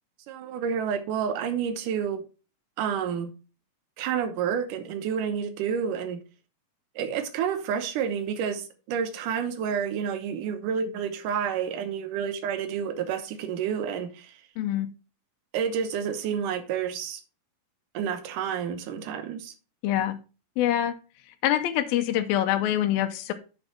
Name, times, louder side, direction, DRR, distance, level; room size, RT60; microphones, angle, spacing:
voice 1, 0.3-2.3 2.8-3.3 4.0-6.2 7.0-14.4 15.5-17.2 17.9-19.5, right 7 dB, 70° right, 2.4 m, -29 dB
voice 2, 14.6-14.9 19.8-20.2 20.6-20.9 21.4-23.3, left 12 dB, 85° left, 2.5 m, -25 dB
8.5 x 5.3 x 4.3 m
omnidirectional pair, 4.1 m